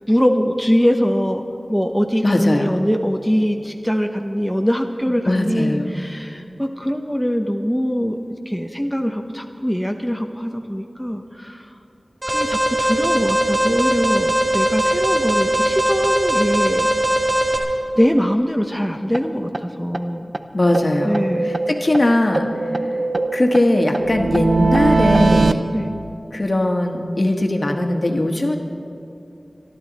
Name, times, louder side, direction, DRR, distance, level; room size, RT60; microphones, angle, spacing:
voice 1, 0.0-1.4 1.7-8.2 8.5-11.8 12.3-16.9 17.9-20.3 21.0-21.5 25.7-25.9, equal, ahead, 3 dB, 0.8 m, -22 dB
voice 2, 2.2-2.8 5.2-5.9 20.5-21.2 21.7-22.5 23.3-25.6 26.3-28.6, left 1 dB, 45° left, 3 dB, 1.4 m, -19 dB
Alarm, 12.2-17.6, right 1 dB, 50° right, 2.3 m, -19 dB
sound 1, 19.1-19.2 19.5-19.6 19.9-20.0 20.3-20.4 20.7-22.0 22.3-25.5, right 3 dB, 70° right, 0.6 m, -20 dB
26.0 x 11.5 x 4.1 m, 2.7 s
wide cardioid pair, 65°, 0 cm